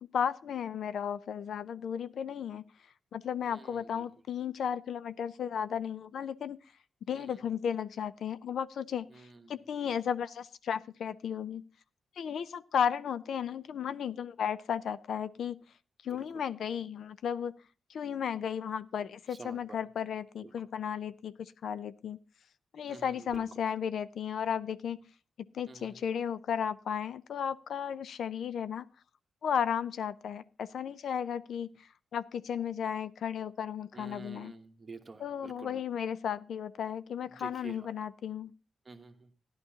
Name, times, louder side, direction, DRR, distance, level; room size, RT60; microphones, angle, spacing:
voice 1, 0.1-2.6 3.1-6.6 7.1-11.7 12.2-15.6 16.0-17.5 17.9-22.2 22.7-25.0 25.5-28.9 29.4-31.9 32.1-34.5 35.2-38.5, left 8 dB, 80° left, 15 dB, 0.5 m, -34 dB
voice 2, 3.4-4.1 7.1-7.4 9.1-10.0 16.1-16.4 19.3-19.8 20.4-20.5 22.9-23.4 25.7-26.0 33.9-35.8 37.3-37.9 38.8-39.3, right 4 dB, 30° right, 6 dB, 1.2 m, -49 dB
14.5 x 11.0 x 2.8 m, 0.34 s
wide cardioid pair, 115°, 0 cm